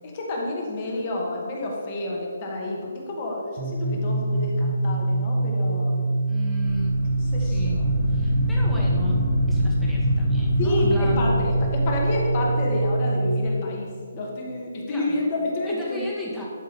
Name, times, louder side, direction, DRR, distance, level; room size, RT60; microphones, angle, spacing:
voice 1, 0.0-6.0 7.3-7.8 8.8-8.9 10.6-13.9 14.1-16.0, left 1 dB, 35° left, -1 dB, 1.8 m, -29 dB
sound 1, 3.6-13.4, right 2 dB, 40° right, 1.5 m, -24 dB
voice 2, 6.3-7.0 7.4-7.8 8.1-9.2 9.5-11.3 14.9-15.2 15.7-16.4, right 1 dB, 5° left, -6 dB, 1.7 m, -35 dB
sound 2, 6.6-12.8, left 1 dB, 55° left, 1.6 m, -28 dB
11.0 x 3.8 x 5.3 m, 2.1 s
figure-of-eight pair, 145°, 0 cm